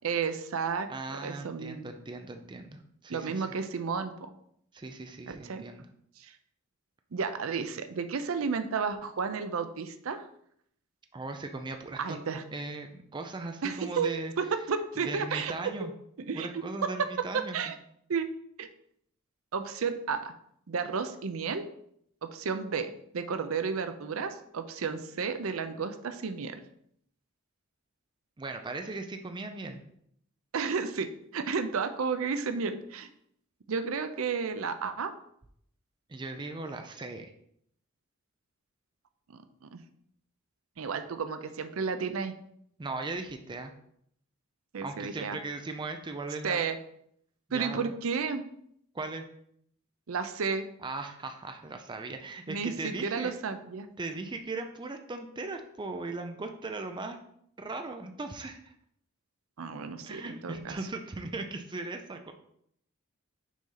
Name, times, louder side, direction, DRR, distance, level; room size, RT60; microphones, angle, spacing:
voice 1, 0.0-1.9 3.1-4.3 5.3-5.6 6.2-6.3 7.1-10.3 12.0-12.4 13.6-15.7 16.3-17.1 17.3-17.7 18.1-18.3 18.6-18.7 19.5-20.3 20.7-21.6 22.2-26.6 30.5-33.1 33.7-35.1 39.3-39.4 39.7-39.8 40.8-42.3 44.7-45.4 46.4-46.8 47.5-48.4 50.1-50.6 52.5-53.9 59.6-60.8, right 5 dB, 70° right, 10 dB, 0.5 m, -32 dB
voice 2, 0.9-3.5 4.7-5.9 11.1-12.2 12.5-14.3 15.0-15.9 16.3-17.6 28.4-29.8 36.1-37.3 42.8-43.7 44.8-46.6 47.5-47.9 48.9-49.2 50.8-53.3 54.0-57.2 57.6-58.7 60.0-62.3, right 3 dB, 20° right, 6 dB, 0.4 m, -38 dB
6.1 x 4.2 x 3.8 m, 0.70 s
head